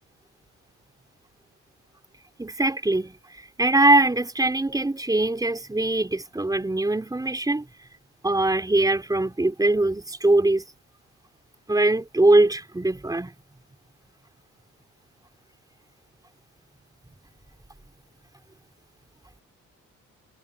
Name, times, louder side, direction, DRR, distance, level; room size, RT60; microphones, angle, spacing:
voice 1, 2.4-7.7 8.2-10.6 11.7-13.3, right 2 dB, 10° right, 4.2 m, -22 dB
cardioid pair, 90°, 30 cm